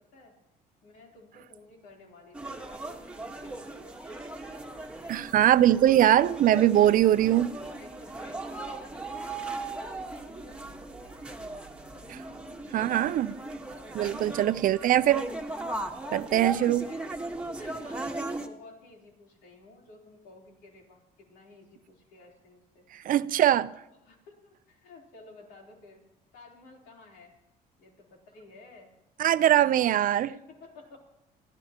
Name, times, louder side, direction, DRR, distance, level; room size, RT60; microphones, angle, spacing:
voice 1, 0.8-4.3 5.3-5.5 6.1-6.3 7.0-7.3 7.6-11.3 11.9-12.0 13.3-14.1 16.1-17.1 17.6-21.0 21.3-22.8 23.7-23.8 24.0-26.0 26.3-27.3 27.8-28.9 30.3-31.0, left 2 dB, 90° left, 3.7 m, -53 dB
sound 1, 2.3-18.5, right 2 dB, 5° right, 1.4 m, -38 dB
voice 2, 5.1-7.5 12.7-13.4 13.9-15.3 16.1-16.8 22.9-23.7 29.2-30.3, right 12 dB, 55° right, 0.6 m, -22 dB
24.0 x 15.0 x 2.9 m
cardioid pair, 110°, 17 cm